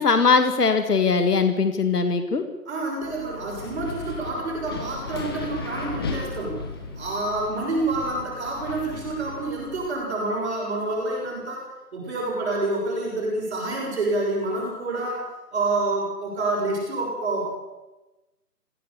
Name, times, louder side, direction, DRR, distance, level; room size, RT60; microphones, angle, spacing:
voice 1, 0.0-2.5, left 4 dB, 65° left, 8 dB, 2.0 m, -20 dB
voice 2, 2.7-6.6 7.0-17.5, right 2 dB, 40° right, -2 dB, 6.8 m, -28 dB
Wind, 3.0-9.9, left 3 dB, 15° left, 1.4 m, -36 dB
23.0 x 17.0 x 7.1 m, 1.1 s
figure-of-eight pair, 160°, 49 cm